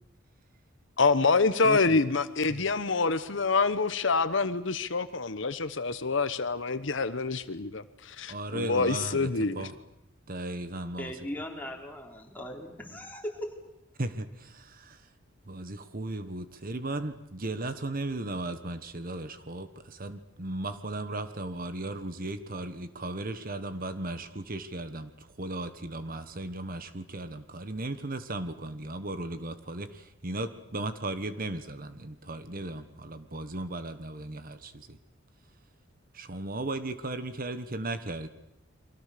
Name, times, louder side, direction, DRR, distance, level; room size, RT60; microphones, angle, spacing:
voice 1, 1.0-9.7, left 4 dB, 65° left, 1.1 m, -26 dB
voice 2, 1.6-2.0 2.5-2.7 8.3-9.8 10.3-11.2 12.9-13.0 14.0-15.1 15.4-35.0 36.1-38.3, right 2 dB, 45° right, 1.4 m, -36 dB
voice 3, 11.0-13.4, equal, 10° left, 4.1 m, -39 dB
29.5 x 24.0 x 6.8 m
head